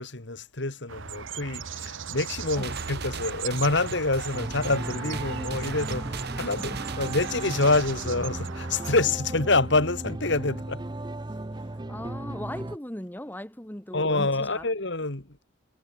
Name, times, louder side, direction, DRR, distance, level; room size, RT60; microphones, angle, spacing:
voice 1, 0.0-10.9 13.9-15.4, left 3 dB, 60° left, 2.3 m, -27 dB
sound 1, 0.9-9.0, right 6 dB, 75° right, 1.1 m, -38 dB
sound 2, 2.5-8.1, right 4 dB, 55° right, 2.4 m, -38 dB
sound 3, 4.3-12.8, right 1 dB, 20° right, 0.7 m, -36 dB
voice 2, 11.9-14.6, left 1 dB, 10° left, 1.5 m, -38 dB
head